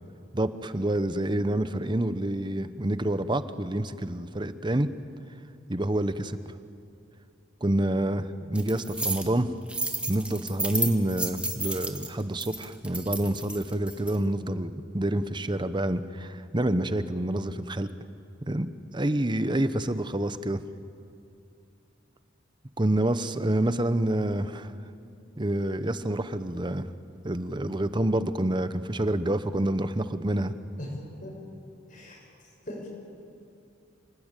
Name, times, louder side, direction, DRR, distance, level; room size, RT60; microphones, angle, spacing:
voice 1, 0.3-4.9 5.7-6.4 7.6-9.5 10.1-17.9 18.5-20.6 22.8-24.7 25.4-26.9 27.2-30.5, right 1 dB, 25° right, 12 dB, 0.9 m, -27 dB
sound 1, 8.6-9.2 9.7-14.2, right 2 dB, 5° right, 1.7 m, -32 dB
voice 2, 30.8-31.3 31.9-32.9, left 1 dB, 45° left, -1 dB, 7.3 m, -40 dB
27.5 x 19.0 x 9.1 m, 2.5 s
head